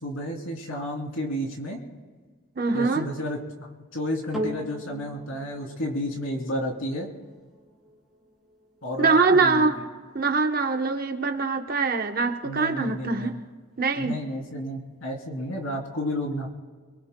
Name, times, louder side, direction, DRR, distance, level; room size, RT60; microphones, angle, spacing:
voice 1, 0.0-1.8 2.7-7.1 8.8-9.7 12.4-13.4 14.0-16.5, equal, 75° left, 0 dB, 3.1 m, -31 dB
voice 2, 2.6-3.0 9.0-9.8 10.1-13.3 13.8-14.2, right 4 dB, 45° right, 5 dB, 0.9 m, -23 dB
sound 1, 4.3-12.9 13.6-13.7, equal, ahead, 2.7 m, -41 dB
26.0 x 23.0 x 2.2 m, 1.5 s
head